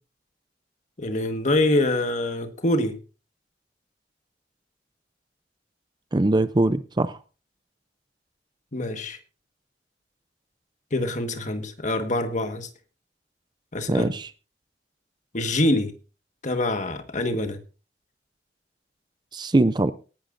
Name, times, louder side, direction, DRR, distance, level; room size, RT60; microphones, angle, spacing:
voice 1, 1.0-3.0 8.7-9.2 10.9-12.7 13.7-14.1 15.3-15.9 16.4-17.6, left 1 dB, 40° left, 7 dB, 1.6 m, -25 dB
voice 2, 6.1-7.2 13.9-14.3 19.3-19.9, right 2 dB, 25° right, 14 dB, 0.5 m, -22 dB
18.0 x 11.5 x 2.6 m, 0.34 s
head